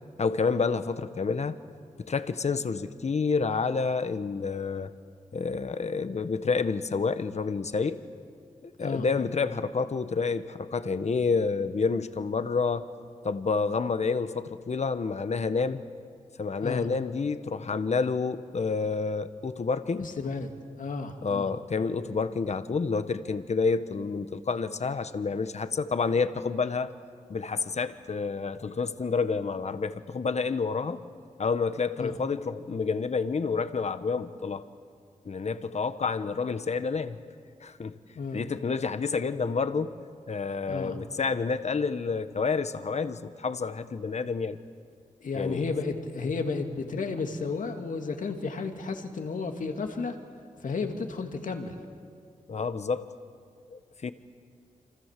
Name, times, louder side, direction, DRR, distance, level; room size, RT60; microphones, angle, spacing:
voice 1, 0.2-1.6 2.0-4.9 5.3-8.0 8.6-12.9 13.2-15.8 16.4-20.1 21.2-26.9 27.3-31.0 31.4-34.6 35.2-37.2 37.6-38.0 38.3-40.0 40.3-44.6 45.3-45.7 52.5-53.1 53.7-54.1, left 4 dB, 55° left, 11 dB, 1.3 m, -29 dB
voice 2, 20.0-20.5 20.8-21.5 32.0-32.1 38.1-38.4 40.7-41.0 45.2-50.2 50.6-51.8, left 4 dB, 75° left, 5 dB, 2.6 m, -32 dB
28.0 x 26.0 x 7.6 m, 2.2 s
cardioid pair, 60°, 13 cm